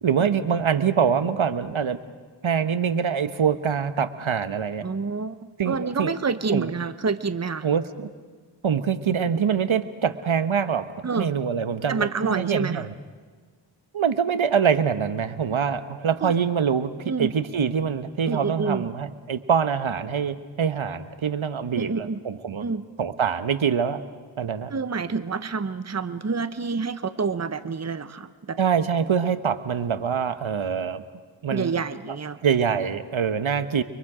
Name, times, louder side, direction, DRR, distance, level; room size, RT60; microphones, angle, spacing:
voice 1, 0.0-2.0 2.4-4.8 5.6-6.1 6.5-6.7 7.6-8.1 8.6-10.9 11.1-12.9 13.9-22.6 23.0-24.0 24.4-24.7 28.6-31.0 31.4-31.8 32.4-33.8, right 7 dB, 85° right, 12 dB, 1.1 m, -24 dB
voice 2, 4.8-7.7 11.0-11.3 11.9-12.9 16.2-16.3 17.1-17.3 18.3-18.9 21.7-22.2 22.6-22.8 24.7-28.6 31.5-32.4, right 4 dB, 35° right, 12 dB, 0.9 m, -28 dB
30.0 x 23.5 x 5.0 m, 1.5 s
wide cardioid pair, 45°, 47 cm